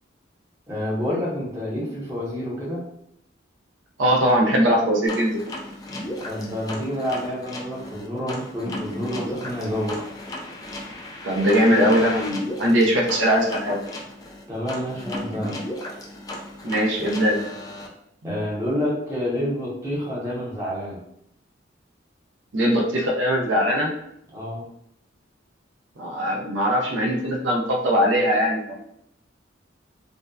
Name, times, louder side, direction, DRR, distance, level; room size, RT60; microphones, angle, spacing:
voice 1, 0.7-2.9 6.3-10.1 14.5-15.7 18.2-21.0 24.3-24.6, equal, 15° right, -6 dB, 0.7 m, -28 dB
voice 2, 4.0-5.4 11.2-13.8 16.6-17.4 18.2-18.4 22.5-23.9 26.0-28.7, equal, 80° right, -1 dB, 0.5 m, -21 dB
sound 1, 5.1-17.9, left 1 dB, 20° left, 0.3 m, -35 dB
2.5 x 2.1 x 2.3 m, 0.76 s
head